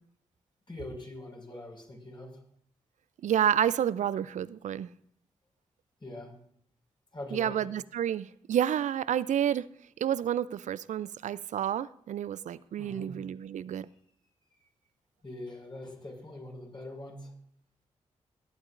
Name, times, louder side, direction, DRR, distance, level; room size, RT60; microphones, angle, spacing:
voice 1, 0.7-2.4 6.0-6.3 7.1-7.7 12.8-13.2 15.2-17.3, left 1 dB, 35° left, 5.5 m, -43 dB
voice 2, 3.2-4.9 7.3-9.7 10.0-13.9, right 10 dB, 65° right, 0.4 m, -29 dB
23.0 x 8.9 x 2.6 m
supercardioid pair, 40°, 13 cm